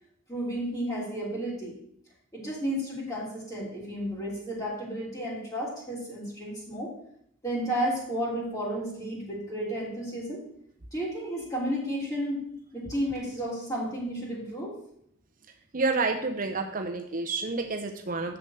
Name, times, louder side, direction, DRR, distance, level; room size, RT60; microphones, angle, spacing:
voice 1, 0.3-1.8 2.3-6.9 7.4-10.4 10.9-12.4 12.7-14.8, equal, 20° left, -6 dB, 3.2 m, -32 dB
voice 2, 15.7-18.4, right 3 dB, 45° right, 5 dB, 0.8 m, -29 dB
7.1 x 6.6 x 8.0 m, 0.71 s
head